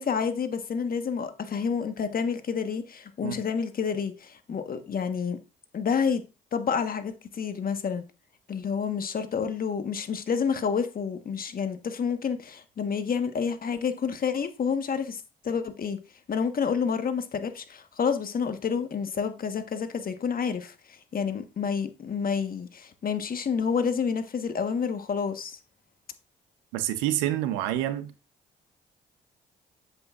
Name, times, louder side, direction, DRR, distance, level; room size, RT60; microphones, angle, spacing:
voice 1, 0.0-5.4 5.7-6.2 6.5-8.0 8.5-16.0 16.3-25.6, left 6 dB, 50° left, 1.3 m, -29 dB
voice 2, 26.7-28.1, right 13 dB, 85° right, 0.8 m, -27 dB
7.9 x 7.8 x 2.5 m
hypercardioid pair, 50°, 19 cm